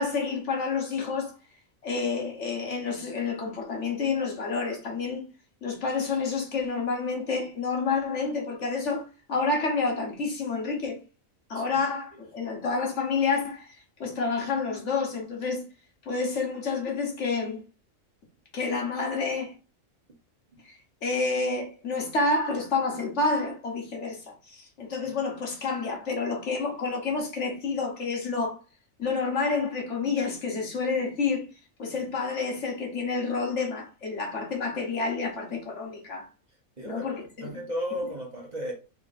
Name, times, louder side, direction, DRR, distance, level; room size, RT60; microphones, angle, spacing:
voice 1, 0.0-1.4 1.8-5.2 5.6-11.0 11.5-15.7 16.0-17.6 18.5-19.5 20.6-28.6 29.0-31.5 31.8-36.3 36.8-37.6, left 4 dB, 60° left, 1.4 m, -29 dB
voice 2, 36.8-37.1 37.4-38.7, equal, 35° right, 1.0 m, -33 dB
3.5 x 3.2 x 3.9 m
omnidirectional pair, 1.4 m